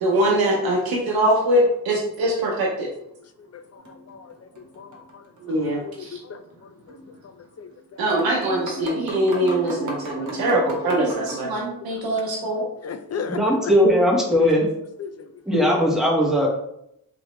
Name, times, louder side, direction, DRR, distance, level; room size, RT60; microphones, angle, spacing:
voice 1, 0.0-2.9 5.4-6.2 8.0-12.6, right 1 dB, 90° right, -3 dB, 0.7 m, -22 dB
sound 1, 3.8-5.1 5.4-5.5 6.9-7.1 7.7-7.8 8.1-11.4, right 1 dB, 55° right, 1.1 m, -33 dB
voice 2, 4.8-6.4 6.9-7.0 7.6-7.7 10.0-10.1 11.4-11.6 12.8-13.7 15.0-15.3, left 6 dB, 45° left, 9 dB, 0.5 m, -36 dB
voice 3, 13.3-14.7 15.5-16.5, equal, ahead, -3 dB, 1.3 m, -19 dB
3.4 x 2.9 x 3.0 m, 0.78 s
cardioid pair, 50°, 36 cm